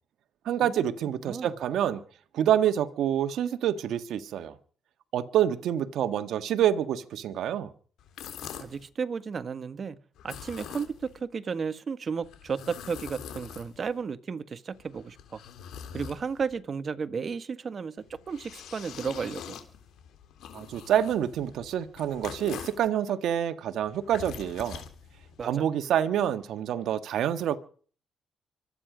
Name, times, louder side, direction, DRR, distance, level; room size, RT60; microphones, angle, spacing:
voice 1, 0.4-2.0 2.3-4.5 5.1-7.7 20.5-24.8 25.4-27.6, right 10 dB, 75° right, 1.6 m, -27 dB
sound 1, 8.0-8.9 10.2-11.2 12.2-14.0 14.7-16.6 18.0-22.9 23.8-25.5, left 8 dB, 80° left, 3.3 m, -44 dB
voice 2, 8.6-10.0 10.2-15.4 15.9-19.6 25.4-25.6, right 5 dB, 45° right, 1.5 m, -33 dB
25.0 x 10.0 x 5.1 m
cardioid pair, 90°, 0 cm